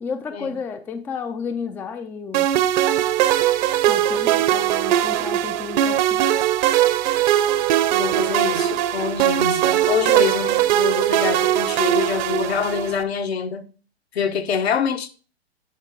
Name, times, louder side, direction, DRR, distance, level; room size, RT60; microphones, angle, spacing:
voice 1, 0.0-2.5 3.9-6.3, left 5 dB, 5° left, 0.4 m, -32 dB
sound 1, 2.3-13.0, right 12 dB, 45° right, 0.8 m, -20 dB
voice 2, 7.9-13.7 14.1-15.1, left 7 dB, 75° left, 1.3 m, -25 dB
10.0 x 4.8 x 4.7 m
hypercardioid pair, 115°, 32 cm